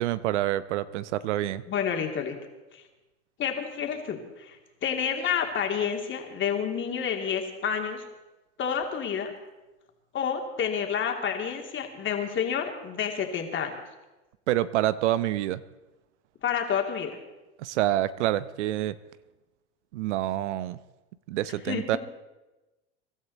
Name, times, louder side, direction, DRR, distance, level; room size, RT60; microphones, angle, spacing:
voice 1, 0.0-1.6 14.5-15.6 17.6-19.0 19.9-20.8 21.3-22.0, right 14 dB, 75° right, 16 dB, 0.8 m, -27 dB
voice 2, 1.7-2.3 2.7-2.8 3.4-4.6 4.8-8.0 8.6-9.3 10.1-13.7 16.4-17.2 21.7-21.8, left 7 dB, 35° left, 3 dB, 2.7 m, -29 dB
23.5 x 12.5 x 4.1 m, 1.1 s
hypercardioid pair, 105°, 35 cm